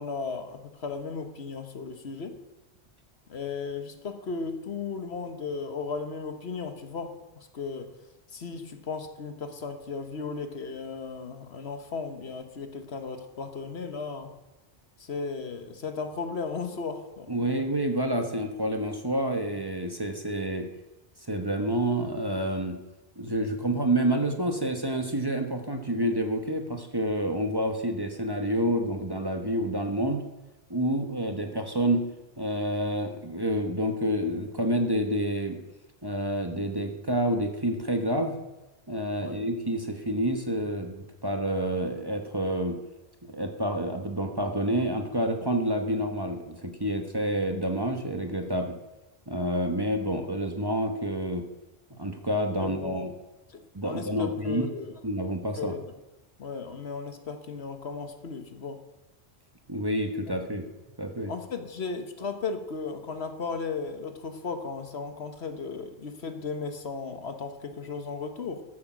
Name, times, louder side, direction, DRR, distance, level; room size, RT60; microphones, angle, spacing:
voice 1, 0.0-2.4 3.3-7.9 8.3-14.3 15.0-17.4 39.2-39.4 52.6-53.0 53.5-55.0 55.6-55.9 56.4-58.8 61.3-68.6, left 4 dB, 70° left, 7 dB, 1.5 m, -35 dB
voice 2, 17.3-20.7 21.3-22.8 23.2-30.3 30.7-32.0 32.4-35.6 36.0-38.4 38.9-42.8 43.2-48.8 49.3-51.4 51.9-53.1 53.7-54.7 55.0-55.8 59.7-60.7 61.0-61.3, right 1 dB, 20° right, 4 dB, 1.2 m, -28 dB
14.0 x 8.6 x 6.2 m, 1.0 s
omnidirectional pair, 1.1 m